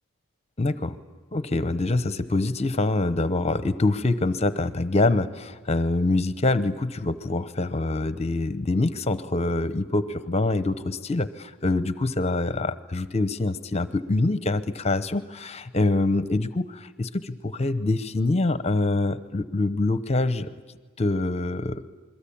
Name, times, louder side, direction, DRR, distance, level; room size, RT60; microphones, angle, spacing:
voice 1, 0.6-1.0 1.3-20.5 21.0-21.8, left 2 dB, 30° left, 13 dB, 0.9 m, -25 dB
28.0 x 22.0 x 8.7 m, 1.4 s
head